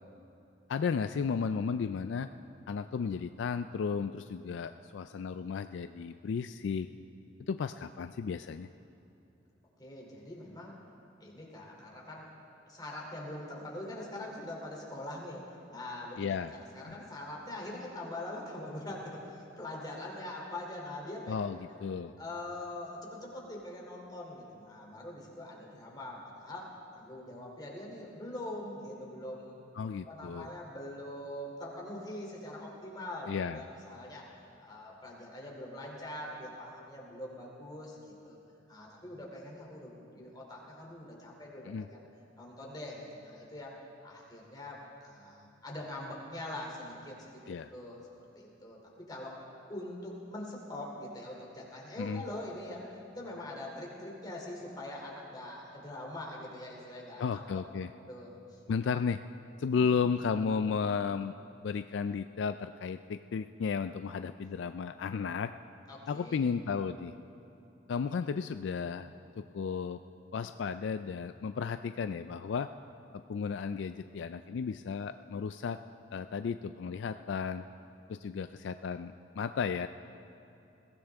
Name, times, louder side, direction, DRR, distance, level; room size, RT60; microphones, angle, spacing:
voice 1, 0.7-2.3 2.7-6.9 7.5-8.7 16.2-16.5 16.9-17.0 21.3-22.1 29.8-30.5 33.3-33.6 41.7-41.9 47.5-47.7 52.0-52.2 57.2-57.9 58.7-59.2 59.6-61.4 61.6-65.5 66.1-67.1 67.9-69.1 69.4-70.0 70.3-72.7 73.1-75.8 76.1-77.6 78.1-79.9, left 6 dB, 70° left, 10 dB, 0.3 m, -34 dB
voice 2, 9.8-10.8 11.2-12.3 12.7-21.3 22.2-29.6 30.0-34.3 34.6-38.4 38.7-42.0 42.4-43.7 44.0-48.1 48.3-48.8 49.1-49.4 49.7-52.9 53.2-57.6 58.1-58.6 65.9-66.5, left 1 dB, 20° left, -2 dB, 2.9 m, -43 dB
21.5 x 16.5 x 3.5 m, 2.9 s
head